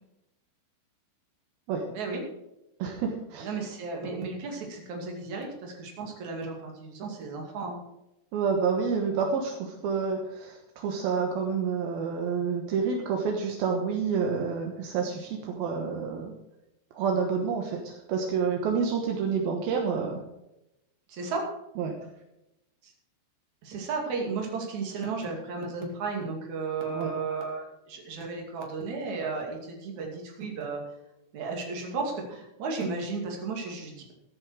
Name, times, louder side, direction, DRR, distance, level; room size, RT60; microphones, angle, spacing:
voice 1, 1.9-2.2 3.4-7.8 21.1-21.5 22.8-22.9 23.6-30.8 31.3-34.1, right 4 dB, 45° right, 1 dB, 3.2 m, -34 dB
voice 2, 2.8-3.5 8.3-16.3 16.9-20.2 21.8-22.0 26.9-27.1, right 5 dB, 70° right, 2 dB, 2.3 m, -28 dB
14.5 x 10.5 x 4.9 m, 0.90 s
omnidirectional pair, 6.0 m